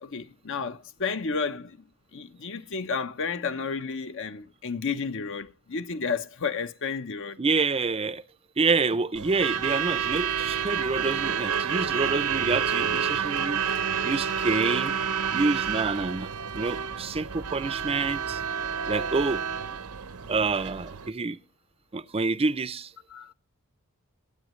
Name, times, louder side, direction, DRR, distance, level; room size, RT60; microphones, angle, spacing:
voice 1, 0.0-1.9 2.1-7.4 23.1-23.3, left 5 dB, 60° left, 0.9 m, -32 dB
voice 2, 7.4-8.2 8.6-13.6 14.0-14.9 15.3-18.4 18.9-19.4 20.3-21.4 21.9-22.9, right 4 dB, 25° right, 0.5 m, -27 dB
Truck / Alarm, 9.1-21.1, right 7 dB, 85° right, 0.9 m, -29 dB
23.0 x 9.0 x 3.1 m
head